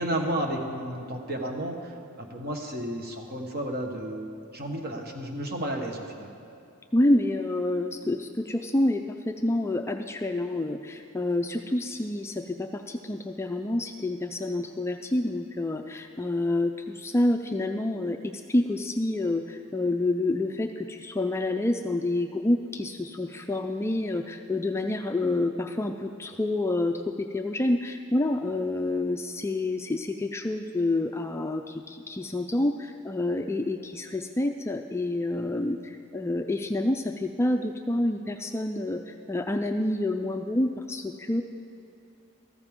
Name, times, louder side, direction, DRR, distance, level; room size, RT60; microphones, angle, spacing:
voice 1, 0.0-6.3, right 1 dB, 45° right, 2 dB, 1.3 m, -32 dB
voice 2, 6.9-41.4, left 1 dB, 10° left, 5 dB, 0.3 m, -28 dB
14.0 x 14.0 x 3.7 m, 2.7 s
head